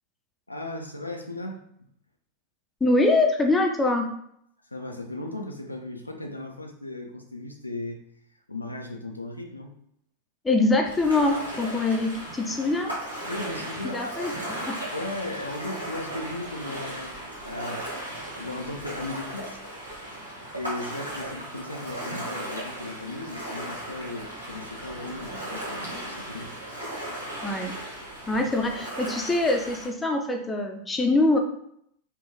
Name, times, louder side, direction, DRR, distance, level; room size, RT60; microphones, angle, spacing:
voice 1, 0.5-1.9 4.6-8.0 8.5-9.7 13.3-14.2 14.9-18.0 18.2-19.6 20.5-26.6 28.3-28.4, left 2 dB, 85° left, 3 dB, 0.5 m, -36 dB
voice 2, 2.8-4.1 10.4-12.9 13.9-14.3 14.7-14.8 27.4-27.7 28.3-31.4, left 2 dB, 10° left, 3 dB, 0.6 m, -23 dB
Ocean, 10.8-29.9, right 1 dB, 85° right, 1.3 m, -36 dB
4.4 x 2.3 x 3.3 m, 0.71 s
figure-of-eight pair, 90°, 0 cm